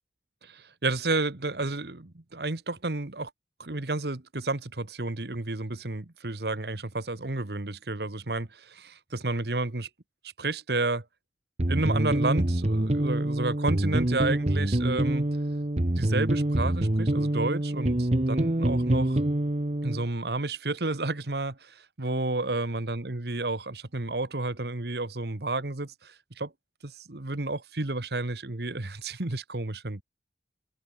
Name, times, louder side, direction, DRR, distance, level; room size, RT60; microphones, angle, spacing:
voice 1, 0.4-3.3 3.6-9.9 10.4-11.0 11.7-15.3 16.0-19.2 19.8-26.5 26.8-30.0, right 2 dB, 70° right, 1.5 m, -31 dB
sound 1, 11.6-20.0, right 1 dB, 40° right, 1.1 m, -26 dB
head